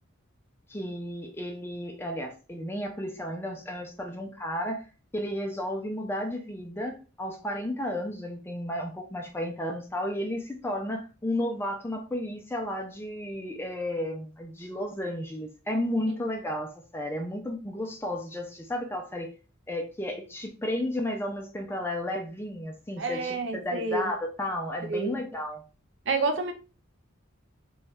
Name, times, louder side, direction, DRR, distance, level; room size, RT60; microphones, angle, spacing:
voice 1, 0.7-4.8 5.1-19.3 19.7-25.6, left 1 dB, 10° left, 0.4 m, -33 dB
voice 2, 23.0-24.1 24.9-25.2 26.1-26.5, right 3 dB, 55° right, 0.5 m, -29 dB
3.1 x 3.1 x 2.3 m
head